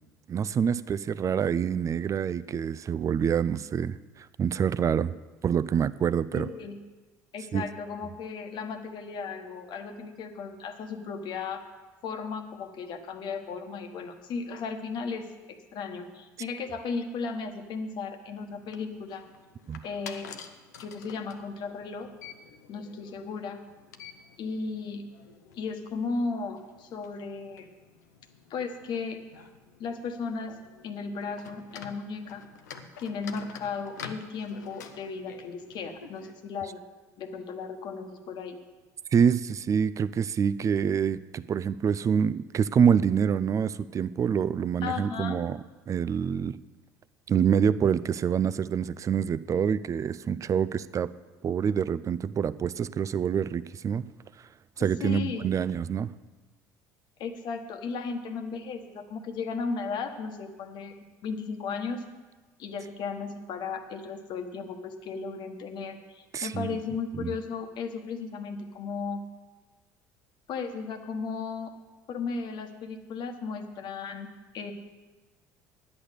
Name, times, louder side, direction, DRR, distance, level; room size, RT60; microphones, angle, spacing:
voice 1, 0.3-5.1 5.4-6.5 7.5-7.6 19.7-19.8 39.1-45.6 45.9-46.6 47.3-51.1 51.4-54.0 54.8-56.1 66.3-66.8 67.2-67.3, right 7 dB, 35° right, 16 dB, 0.4 m, -26 dB
voice 2, 6.3-6.8 7.3-11.6 12.0-15.3 15.7-19.2 19.8-20.3 20.8-22.1 22.7-23.6 24.4-25.0 25.6-27.7 28.5-29.2 29.8-30.6 30.8-32.4 33.0-36.8 37.2-38.6 44.8-45.4 54.8-55.6 57.2-61.0 61.2-62.0 62.6-69.2 70.5-71.7 72.1-74.3 74.5-74.7, left 5 dB, 60° left, 6 dB, 1.2 m, -35 dB
sound 1, 18.3-36.3, left 6 dB, 90° left, 0.7 m, -49 dB
10.5 x 8.5 x 6.6 m, 1.3 s
hypercardioid pair, 65°, 9 cm